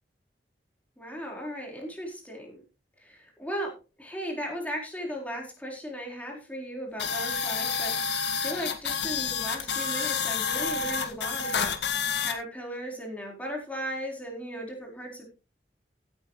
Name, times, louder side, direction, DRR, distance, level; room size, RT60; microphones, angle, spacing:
voice 1, 1.0-2.6 3.0-3.7 4.0-11.7 12.2-15.2, equal, 10° left, 0 dB, 4.4 m, -36 dB
sound 1, 7.0-12.3, left 6 dB, 80° left, 1.9 m, -29 dB
16.0 x 9.5 x 3.2 m, 0.31 s
head